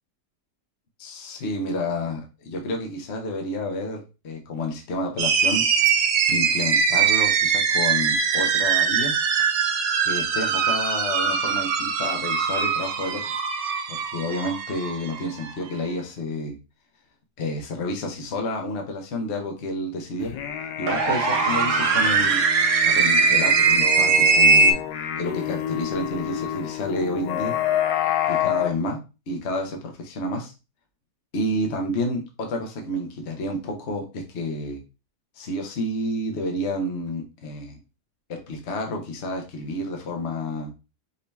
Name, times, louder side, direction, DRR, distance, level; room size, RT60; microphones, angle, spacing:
voice 1, 1.0-5.6 5.9-9.2 10.0-13.3 13.9-16.6 17.4-20.3 20.8-22.4 22.8-24.8 25.1-27.5 28.3-29.0 29.3-30.5 31.3-34.8 35.4-37.8 38.3-40.7, left 1 dB, 45° left, 3 dB, 1.1 m, -30 dB
sound 1, 5.2-15.5 20.9-24.7, right 5 dB, 60° right, 0.8 m, -21 dB
sound 2, 20.2-28.7, left 10 dB, 85° left, 1.3 m, -28 dB
5.4 x 2.8 x 3.4 m, 0.29 s
omnidirectional pair, 1.9 m